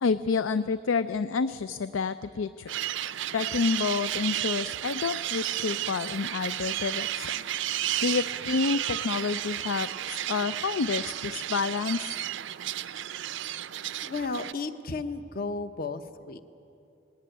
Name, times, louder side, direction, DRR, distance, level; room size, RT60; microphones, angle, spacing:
voice 1, 0.0-2.7 3.3-7.4 8.0-12.1, left 5 dB, 90° left, 14 dB, 0.4 m, -29 dB
sound 1, 2.7-14.5, right 12 dB, 70° right, 0.5 m, -32 dB
voice 2, 14.0-16.4, left 3 dB, 45° left, 10 dB, 0.9 m, -34 dB
20.0 x 18.0 x 9.3 m, 2.7 s
head